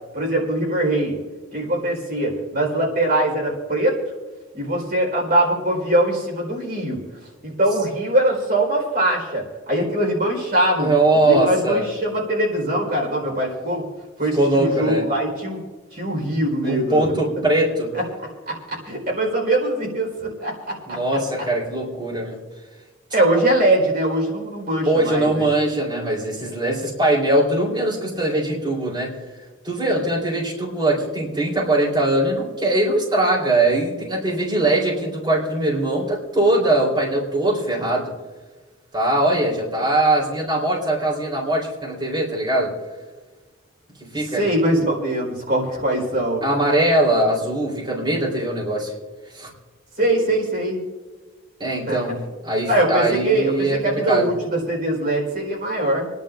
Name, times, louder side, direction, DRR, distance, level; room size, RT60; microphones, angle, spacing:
voice 1, 0.1-1.2 1.5-4.0 4.5-7.0 7.4-10.9 11.3-13.9 14.2-15.6 15.9-17.1 17.9-18.0 18.7-20.5 20.9-21.0 23.1-25.5 44.4-46.4 50.0-50.8 51.9-52.0 52.7-56.1, right 1 dB, 45° right, -2 dB, 4.3 m, -22 dB
voice 2, 10.8-11.9 14.3-15.0 16.6-17.9 20.9-22.4 24.9-29.1 29.6-38.1 38.9-42.7 44.1-44.5 46.4-48.9 49.3-49.5 51.6-52.2 52.4-54.3, right 1 dB, 20° right, -4 dB, 3.8 m, -21 dB
29.5 x 11.0 x 2.6 m, 1.3 s
head